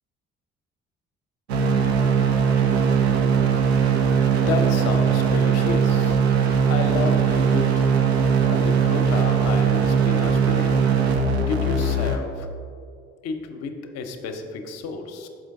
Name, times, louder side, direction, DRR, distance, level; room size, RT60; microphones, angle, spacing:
sound 1, 1.5-12.2, right 6 dB, 85° right, 0.5 m, -20 dB
voice 1, 4.3-6.2 6.7-7.9 8.4-10.8 11.4-12.5 13.2-15.3, left 4 dB, 55° left, 6 dB, 0.7 m, -31 dB
6.1 x 5.1 x 3.6 m, 2.4 s
figure-of-eight pair, 50°, 31 cm